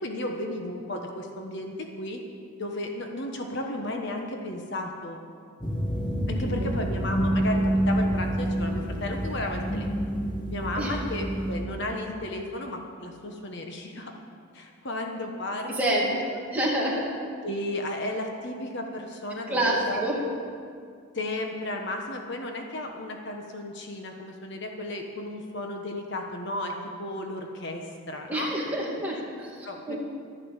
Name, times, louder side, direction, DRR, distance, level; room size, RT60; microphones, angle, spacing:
voice 1, 0.0-2.2 2.6-5.2 6.3-9.9 10.5-14.1 14.5-16.2 17.4-20.0 21.1-28.5 29.6-30.0, left 1 dB, 50° left, 2 dB, 1.2 m, -34 dB
sound 1, 5.6-11.6, equal, 20° left, 1.3 m, -27 dB
voice 2, 6.4-6.7 10.8-10.9 15.7-16.1 16.5-17.1 19.5-20.2 28.3-30.0, right 1 dB, 5° right, -5 dB, 2.2 m, -28 dB
12.0 x 11.0 x 7.2 m, 2.2 s
head